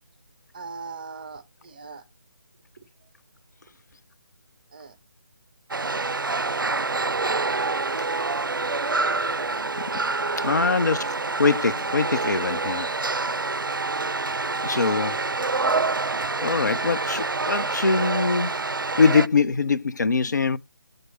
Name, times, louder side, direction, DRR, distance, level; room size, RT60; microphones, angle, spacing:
voice 1, 0.5-2.0 4.7-4.9 10.3-11.1, right 5 dB, 25° right, 0.7 m, -40 dB
sound 1, 5.7-19.3, right 3 dB, 75° right, 0.4 m, -27 dB
voice 2, 10.4-11.1 11.4-12.9 14.6-15.2 16.4-18.7 19.0-20.6, left 4 dB, 55° left, 0.5 m, -23 dB
6.6 x 4.5 x 4.3 m
figure-of-eight pair, 150°, 11 cm